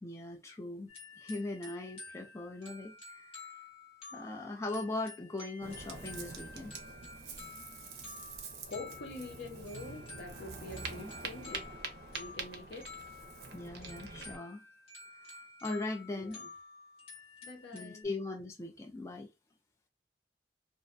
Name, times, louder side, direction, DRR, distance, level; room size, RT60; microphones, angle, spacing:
voice 1, 0.0-0.9 1.2-3.4 4.1-6.8 11.0-11.1 13.5-14.6 15.2-16.4 17.7-19.3, left 2 dB, 15° left, 0.3 m, -40 dB
sound 1, 0.9-18.0, left 3 dB, 35° left, 1.2 m, -51 dB
Ocean, 5.6-14.4, right 4 dB, 65° right, 0.5 m, -45 dB
voice 2, 8.7-11.7 12.1-12.9 16.1-16.5 17.4-18.1, left 2 dB, 80° left, 0.7 m, -46 dB
2.4 x 2.1 x 2.5 m
head